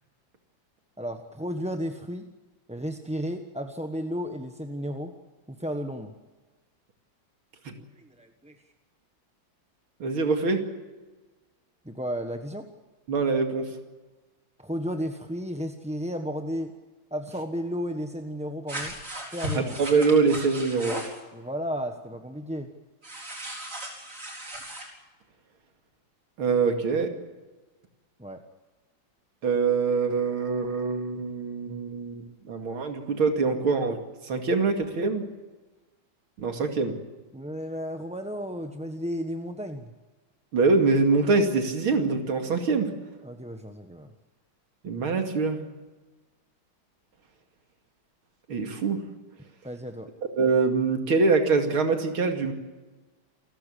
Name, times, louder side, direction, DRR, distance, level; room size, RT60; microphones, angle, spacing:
voice 1, 1.0-2.3 2.7-5.1 5.5-6.1 7.8-8.6 11.8-12.7 14.6-16.7 17.1-19.0 19.3-19.7 21.3-22.7 28.2-28.4 37.3-39.9 43.2-44.1 49.6-50.1, equal, 5° right, 5 dB, 0.9 m, -33 dB
voice 2, 10.0-10.6 13.1-13.6 19.6-21.0 26.4-27.1 29.4-34.0 34.3-35.3 36.4-36.9 40.5-42.9 44.8-45.6 48.5-49.0 50.4-52.5, right 4 dB, 90° right, 5 dB, 3.2 m, -24 dB
sound 1, 18.7-21.2 23.0-24.9, right 1 dB, 35° right, 4.7 m, -36 dB
28.0 x 14.5 x 8.5 m, 1.2 s
omnidirectional pair, 2.2 m